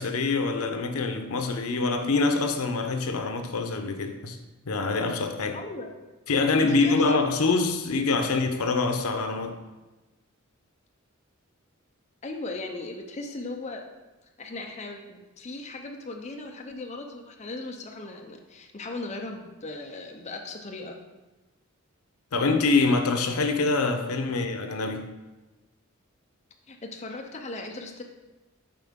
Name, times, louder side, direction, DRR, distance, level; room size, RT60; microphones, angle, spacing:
voice 1, 0.0-4.4 4.7-5.6 6.3-9.6 22.3-25.1, left 3 dB, 85° left, 0.7 m, -25 dB
voice 2, 5.5-5.9 6.6-7.0 12.2-13.8 14.4-21.0 26.7-28.0, left 2 dB, 30° left, 0.5 m, -37 dB
7.4 x 4.6 x 3.6 m
head